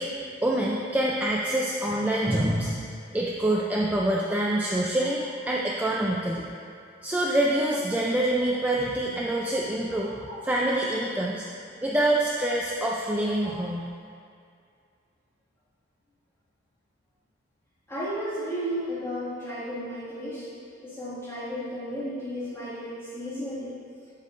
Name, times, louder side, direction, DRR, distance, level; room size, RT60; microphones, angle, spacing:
voice 1, 0.0-6.5 7.0-10.1 10.4-11.5 11.8-13.9, right 1 dB, 10° right, -4 dB, 0.4 m, -26 dB
voice 2, 10.1-10.4 13.5-13.6 17.9-23.8, equal, 15° left, -10 dB, 1.9 m, -34 dB
13.5 x 5.6 x 2.5 m, 2.3 s
head